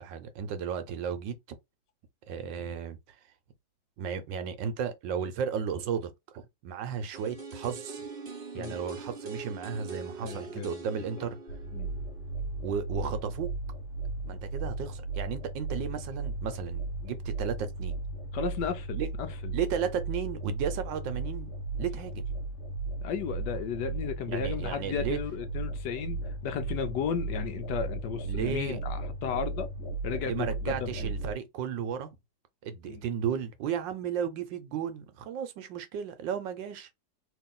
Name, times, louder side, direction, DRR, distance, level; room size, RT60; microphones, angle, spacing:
voice 1, 0.0-1.6 2.3-3.0 4.0-8.0 8.5-11.4 12.6-13.5 14.2-18.0 19.0-19.1 19.5-21.5 21.8-22.2 24.3-25.2 28.3-28.8 30.3-32.1 32.6-36.9, right 7 dB, 75° right, 1.4 m, -34 dB
sound 1, 7.1-13.0 13.3-13.4, right 4 dB, 35° right, 1.0 m, -43 dB
voice 2, 10.2-10.7 11.7-11.9 18.3-19.5 23.0-29.7 30.0-31.1 32.8-33.0, left 7 dB, 70° left, 1.2 m, -34 dB
sound 2, 11.5-31.3, right 3 dB, 55° left, 0.8 m, -36 dB
3.0 x 3.0 x 3.7 m
omnidirectional pair, 2.1 m